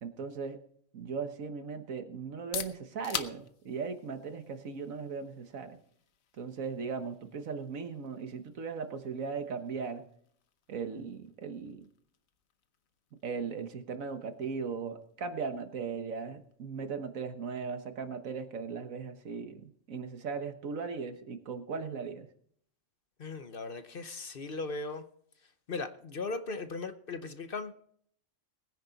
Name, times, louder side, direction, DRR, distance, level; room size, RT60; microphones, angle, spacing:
voice 1, 0.0-0.6 0.9-5.8 6.4-10.0 10.7-11.9 13.2-22.3, right 5 dB, 85° right, 8 dB, 1.6 m, -38 dB
sound 1, 2.2-17.9, left 8 dB, 85° left, 1.3 m, -48 dB
voice 2, 23.2-25.0 25.7-27.7, left 3 dB, 45° left, 10 dB, 1.0 m, -38 dB
21.0 x 9.8 x 4.0 m, 0.65 s
omnidirectional pair, 1.4 m